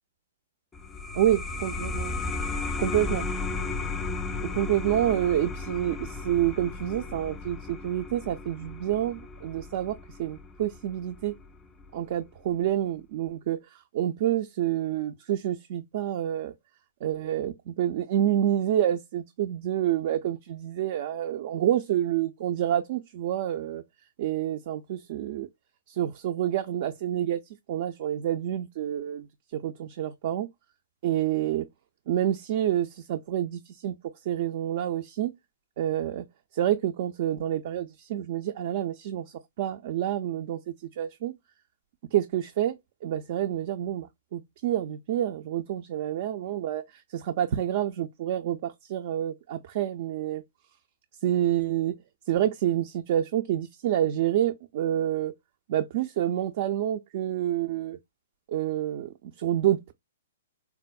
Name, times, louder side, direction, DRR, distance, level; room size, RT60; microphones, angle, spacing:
sound 1, 0.7-11.9, left 3 dB, 15° left, 0.4 m, -35 dB
voice 1, 1.2-2.1 2.8-3.3 4.4-11.3 11.9-16.5 17.0-23.8 24.2-25.5 25.9-27.4 27.7-30.5 31.0-31.6 32.1-33.9 34.3-35.3 35.8-36.3 36.5-41.3 42.1-50.4 51.2-51.9 52.3-55.3 55.7-58.0 58.5-59.9, right 11 dB, 50° right, 0.4 m, -28 dB
4.4 x 2.0 x 2.2 m
hypercardioid pair, 125°, 0 cm